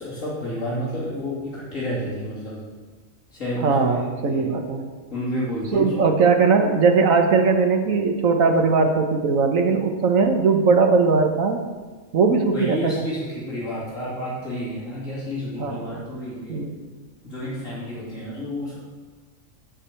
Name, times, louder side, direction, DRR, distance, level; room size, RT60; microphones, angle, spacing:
voice 1, 0.0-2.6 3.3-4.5 5.1-5.9 12.5-16.6 17.2-18.8, equal, 65° left, -9 dB, 3.3 m, -30 dB
voice 2, 3.6-4.9 5.7-11.6 12.1-12.9 15.6-16.0 16.5-16.7, right 4 dB, 70° right, 5 dB, 1.5 m, -19 dB
12.0 x 5.0 x 7.5 m, 1.4 s
omnidirectional pair, 1.5 m